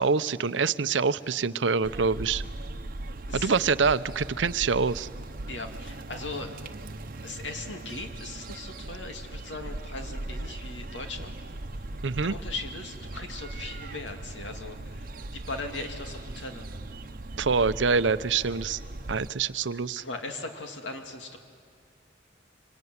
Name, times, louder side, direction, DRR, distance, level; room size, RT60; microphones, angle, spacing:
voice 1, 0.0-2.4 3.3-5.1 12.0-12.3 17.4-18.8 19.1-20.0, right 5 dB, 85° right, 15 dB, 0.7 m, -25 dB
sound 1, 1.8-19.3, right 2 dB, 50° right, 0.9 m, -39 dB
voice 2, 5.5-6.6 7.2-11.3 12.2-16.7 20.0-21.4, left 3 dB, 85° left, 4 dB, 2.6 m, -39 dB
25.5 x 24.0 x 9.5 m, 2.2 s
head